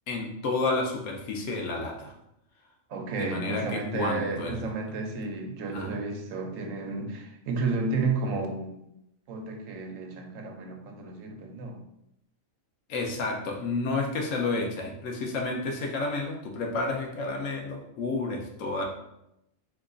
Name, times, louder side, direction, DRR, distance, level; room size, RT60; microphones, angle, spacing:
voice 1, 0.1-2.1 3.1-4.7 5.7-6.0 12.9-18.8, left 3 dB, 80° left, 2 dB, 1.0 m, -30 dB
voice 2, 2.9-8.8 9.3-11.8, right 3 dB, 80° right, 3 dB, 0.9 m, -32 dB
2.9 x 2.3 x 3.7 m, 0.82 s
omnidirectional pair, 1.3 m